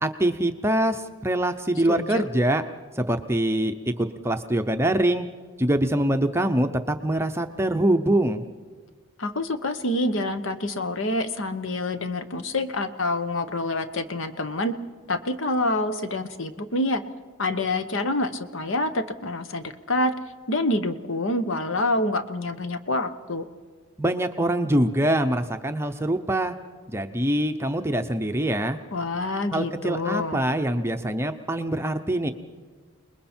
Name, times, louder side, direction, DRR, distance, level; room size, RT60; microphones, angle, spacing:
voice 1, 0.0-2.6 3.0-5.3 5.6-8.4 24.0-26.5 26.9-28.8 29.5-32.3, right 1 dB, 10° right, 6 dB, 0.7 m, -24 dB
voice 2, 1.9-2.3 9.2-14.7 15.1-17.0 17.4-20.1 20.5-23.4 28.9-30.4, left 2 dB, 60° left, 9 dB, 1.1 m, -27 dB
29.0 x 20.5 x 4.4 m, 1.5 s
head